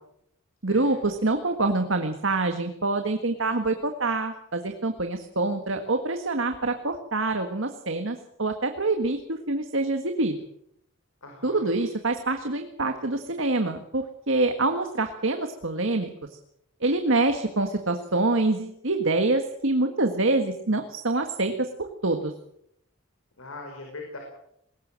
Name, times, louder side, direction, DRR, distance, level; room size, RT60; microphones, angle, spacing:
voice 1, 0.6-10.4 11.4-16.1 16.8-21.7 22.0-22.3, right 2 dB, 70° right, 6 dB, 1.7 m, -26 dB
voice 2, 11.2-11.8 23.4-24.2, left 2 dB, 90° left, 2 dB, 5.3 m, -41 dB
21.5 x 18.5 x 7.6 m, 0.75 s
head